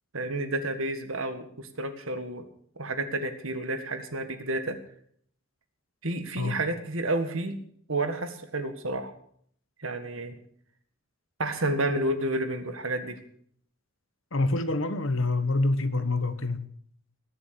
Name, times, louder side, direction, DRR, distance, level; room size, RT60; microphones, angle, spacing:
voice 1, 0.1-2.4 2.8-4.8 6.0-7.5 7.9-9.1 9.8-10.3 11.4-13.2, right 2 dB, 70° right, 1.9 m, -30 dB
voice 2, 14.3-16.6, left 2 dB, 65° left, 1.3 m, -26 dB
20.5 x 7.0 x 6.9 m
head